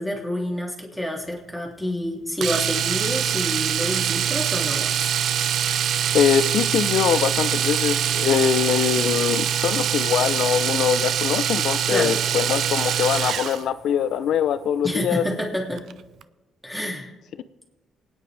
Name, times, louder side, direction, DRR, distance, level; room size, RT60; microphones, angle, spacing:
voice 1, 0.0-4.9 11.9-12.2 14.8-15.8 16.6-17.1, left 1 dB, ahead, -1 dB, 2.8 m, -28 dB
Domestic sounds home sounds, 2.4-13.6 15.8-15.9 16.2-16.3, right 9 dB, 70° right, 0.5 m, -24 dB
voice 2, 6.1-15.2, left 9 dB, 75° left, 13 dB, 0.6 m, -23 dB
sound 1, 8.5-15.4, right 1 dB, 20° right, 3.7 m, -50 dB
28.0 x 9.7 x 3.4 m, 1.2 s
cardioid pair, 90°, 0 cm